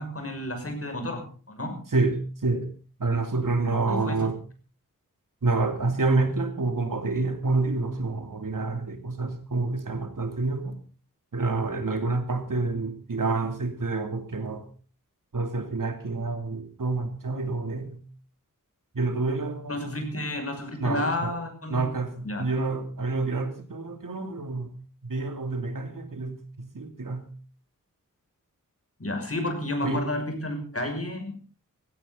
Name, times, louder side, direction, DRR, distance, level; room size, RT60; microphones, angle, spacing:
voice 1, 0.0-1.8 3.9-4.2 19.7-21.9 22.2-22.4 29.0-31.4, left 1 dB, 45° left, 5 dB, 6.1 m, -31 dB
voice 2, 1.9-2.7 3.0-4.4 5.4-10.8 11.3-14.7 15.3-18.0 18.9-20.0 20.8-21.3 21.7-24.7 25.0-27.3 29.8-30.0, right 3 dB, 75° right, 6 dB, 3.0 m, -28 dB
18.0 x 16.5 x 3.9 m, 0.38 s
wide cardioid pair, 85°, 33 cm